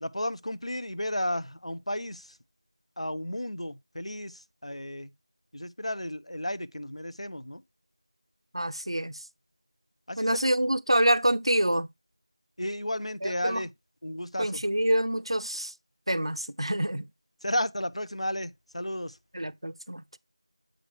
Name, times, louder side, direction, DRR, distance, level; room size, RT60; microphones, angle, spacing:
voice 1, 0.0-2.3 3.0-5.1 5.5-7.6 10.1-10.4 12.6-13.7 14.0-14.6 17.4-19.2, left 1 dB, 85° left, 0.6 m, -33 dB
voice 2, 8.5-9.2 10.2-11.9 13.2-13.6 14.4-15.7 16.1-17.1 19.3-20.0, right 1 dB, 60° right, 0.4 m, -26 dB
7.7 x 5.0 x 3.2 m
figure-of-eight pair, 180°, 3 cm